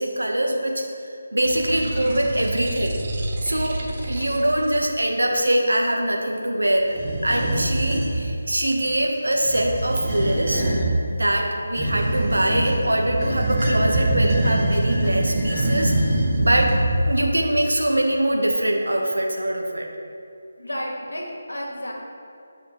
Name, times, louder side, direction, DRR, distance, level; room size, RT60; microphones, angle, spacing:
voice 1, 0.0-2.9 3.4-6.9 7.2-10.6 11.1-16.8 17.1-19.9, right 1 dB, 75° right, 1 dB, 1.2 m, -23 dB
sound 1, 1.4-4.8, right 1 dB, 35° right, 1.0 m, -30 dB
sound 2, 6.9-8.2 9.3-11.0 11.7-17.3, right 1 dB, 20° right, 1.2 m, -23 dB
voice 2, 20.6-21.9, equal, 75° left, -1 dB, 1.8 m, -31 dB
11.0 x 5.7 x 3.2 m, 2.5 s
figure-of-eight pair, 155°, 0 cm